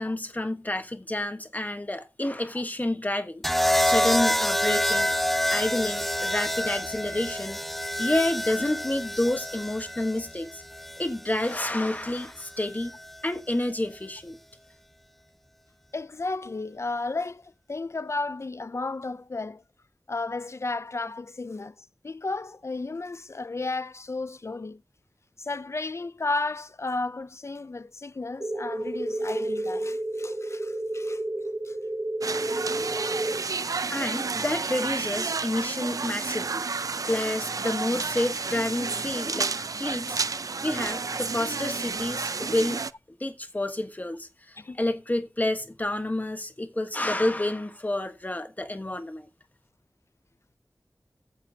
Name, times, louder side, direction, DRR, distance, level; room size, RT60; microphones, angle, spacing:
voice 1, 0.0-5.1 5.5-7.6 8.0-10.6 11.0-12.9 13.2-14.4 33.9-36.6 37.0-39.5 39.8-40.2 40.6-42.8 43.1-49.3, left 1 dB, 25° left, 1.2 m, -29 dB
sound 1, 3.4-11.6 12.8-13.2, left 1 dB, 5° left, 0.8 m, -27 dB
voice 2, 15.9-19.6 20.1-24.8 25.4-31.2 31.6-31.8 32.5-33.0 44.6-44.8, left 3 dB, 50° left, 0.4 m, -33 dB
sound 2, 28.4-33.4, right 1 dB, 45° right, 3.0 m, -31 dB
sound 3, 32.2-42.9, right 4 dB, 75° right, 0.5 m, -31 dB
14.5 x 10.0 x 2.8 m
wide cardioid pair, 65°, 6 cm